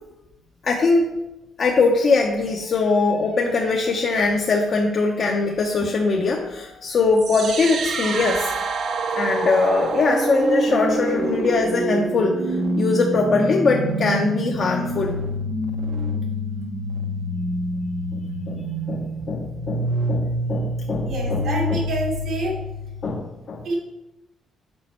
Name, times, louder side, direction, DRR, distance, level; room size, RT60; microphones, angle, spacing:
voice 1, 0.6-1.1 1.6-8.5 9.2-15.2 18.1-18.2 18.5-21.4 21.7-21.8 23.0-23.7, left 3 dB, 50° left, 0 dB, 0.7 m, -22 dB
sound 1, 7.2-23.2, right 1 dB, 65° right, 0.8 m, -26 dB
voice 2, 21.1-22.6 23.6-23.7, right 2 dB, 85° right, -3 dB, 2.1 m, -27 dB
6.2 x 4.2 x 4.3 m, 0.96 s
cardioid pair, 90°, 0 cm